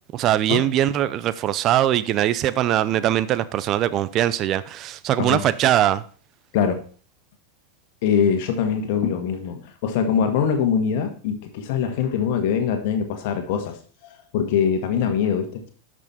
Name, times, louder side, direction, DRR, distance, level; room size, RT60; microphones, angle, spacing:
voice 1, 0.1-6.0, right 12 dB, 40° right, 0.7 m, -21 dB
voice 2, 8.0-13.8 14.0-15.7, left 7 dB, 55° left, 1.7 m, -23 dB
12.0 x 6.3 x 4.3 m
hypercardioid pair, 90°, 0 cm